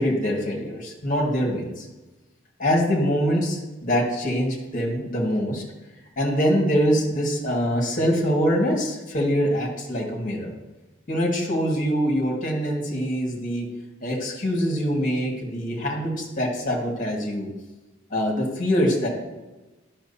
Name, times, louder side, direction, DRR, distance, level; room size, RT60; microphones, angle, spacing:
voice 1, 0.0-1.8 2.6-5.6 6.2-10.5 11.1-13.7 14.0-17.5 18.1-19.1, equal, 40° left, -1 dB, 1.7 m, -24 dB
10.5 x 6.1 x 2.7 m, 1.1 s
head